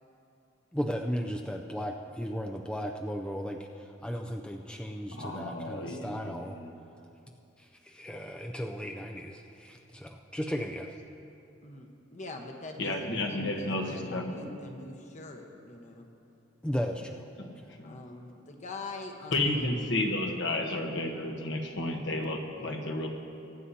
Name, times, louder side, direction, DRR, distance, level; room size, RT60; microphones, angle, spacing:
voice 1, 0.7-6.6 7.6-10.9 16.6-17.3 17.6-17.8, equal, 5° left, 2 dB, 0.4 m, -36 dB
voice 2, 5.1-6.7 12.8-14.5 17.4-18.0 19.3-23.1, left 2 dB, 65° left, 3 dB, 1.2 m, -32 dB
voice 3, 11.6-16.1 17.8-19.8 20.3-20.4, left 2 dB, 40° left, 3 dB, 1.1 m, -43 dB
23.0 x 9.8 x 2.8 m, 2.7 s
head